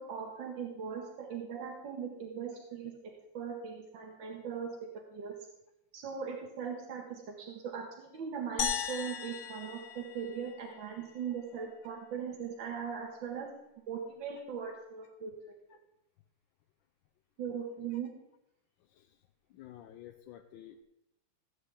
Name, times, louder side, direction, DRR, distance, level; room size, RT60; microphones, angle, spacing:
voice 1, 0.0-5.4 5.9-13.5 13.9-15.3 17.4-18.1, right 7 dB, 75° right, 0 dB, 1.9 m, -40 dB
sound 1, 8.6-11.0, left 8 dB, 65° left, 1.3 m, -37 dB
voice 2, 19.5-20.8, left 11 dB, 85° left, 4 dB, 1.4 m, -51 dB
15.5 x 8.2 x 3.3 m, 0.85 s
omnidirectional pair, 2.1 m